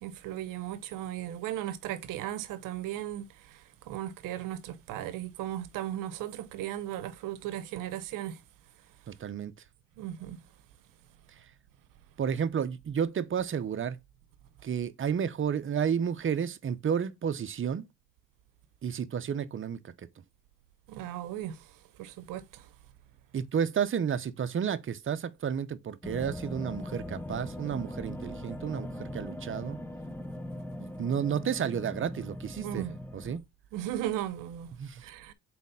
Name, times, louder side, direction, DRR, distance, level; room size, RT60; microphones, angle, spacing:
voice 1, 0.0-8.4 10.0-10.4 20.9-21.6 22.0-22.7 32.6-33.0 33.7-34.7 35.0-35.3, right 12 dB, 90° right, 0.8 m, -36 dB
voice 2, 9.1-9.5 12.2-14.0 14.6-17.9 18.8-19.8 23.3-29.8 30.8-32.9 33.1-33.4 34.8-35.0, right 8 dB, 40° right, 0.7 m, -31 dB
sound 1, 26.0-33.4, left 1 dB, 5° left, 0.9 m, -40 dB
4.2 x 4.0 x 5.5 m
cardioid pair, 80°, 31 cm